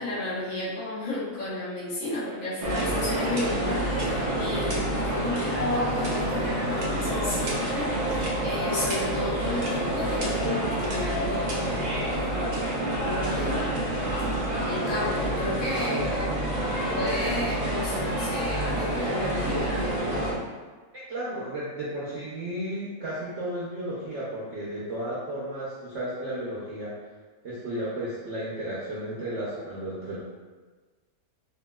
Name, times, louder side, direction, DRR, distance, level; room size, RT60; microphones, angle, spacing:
voice 1, 0.0-11.9 12.1-12.6 13.0-13.7 14.6-16.3 16.9-19.9, left 2 dB, 70° left, -11 dB, 1.5 m, -32 dB
sound 1, 2.6-20.3, right 1 dB, 80° right, 0.4 m, -28 dB
voice 2, 20.9-26.9 27.4-30.2, right 1 dB, 60° right, -8 dB, 0.8 m, -33 dB
3.5 x 2.3 x 2.2 m, 1.4 s
omnidirectional pair, 1.6 m